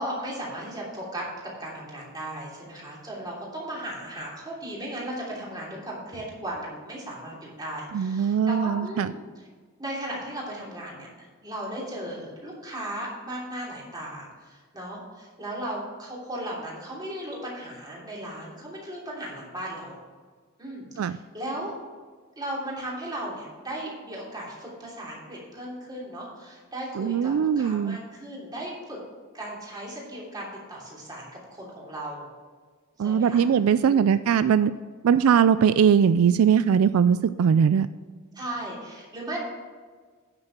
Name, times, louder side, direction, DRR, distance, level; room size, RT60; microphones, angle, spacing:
voice 1, 0.0-9.2 9.8-11.1 11.4-20.0 20.6-21.7 22.4-29.0 29.3-32.3 33.0-33.4 33.9-34.2 38.3-39.4, right 1 dB, 20° right, -4 dB, 3.0 m, -36 dB
voice 2, 7.9-9.1 21.0-21.2 26.9-28.0 33.0-34.7 35.0-37.9, right 7 dB, 80° right, 14 dB, 0.3 m, -20 dB
9.9 x 6.5 x 6.0 m, 1.5 s
head